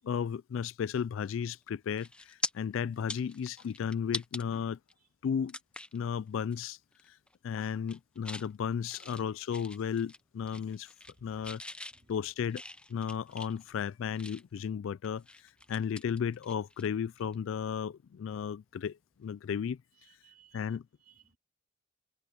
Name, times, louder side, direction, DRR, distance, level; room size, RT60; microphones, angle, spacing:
voice 1, 0.0-4.8 5.2-5.6 5.9-6.8 7.4-10.9 11.2-11.6 12.1-12.6 12.9-15.2 15.7-19.8 20.5-20.8, left 7 dB, 70° left, 0.3 m, -34 dB
sound 1, 1.4-1.6 2.0-2.5 2.9-4.4 4.9-5.0 5.5-6.0 6.4-6.6 6.9-7.3 7.7-8.5 8.9-10.2 10.5-11.2 11.4-14.6 15.0-16.9 17.1-17.3 19.2-19.4, left 2 dB, 5° left, 0.5 m, -42 dB
voice 2, 11.1-11.6 11.9-12.3 17.3-17.5 19.9-21.4, right 5 dB, 45° right, 4.2 m, -64 dB
head